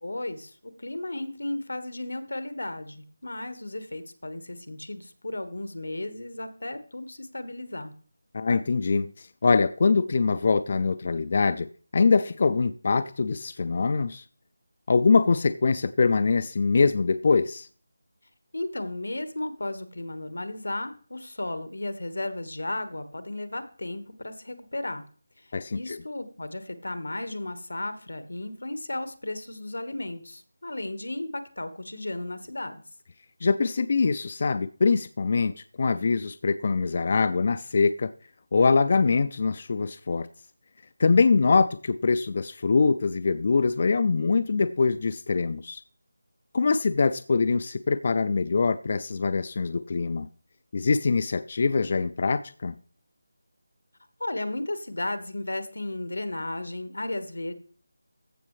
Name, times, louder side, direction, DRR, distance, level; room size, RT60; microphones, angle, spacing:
voice 1, 0.0-7.9 18.5-25.0 25.4-32.8 54.2-57.5, left 2 dB, 90° left, 1.3 m, -34 dB
voice 2, 8.3-14.2 14.9-17.7 25.5-26.0 33.4-38.1 38.5-40.3 41.0-45.8 46.5-50.3 50.7-52.7, left 4 dB, 40° left, 0.3 m, -23 dB
14.5 x 6.3 x 3.2 m
figure-of-eight pair, 170°, 0 cm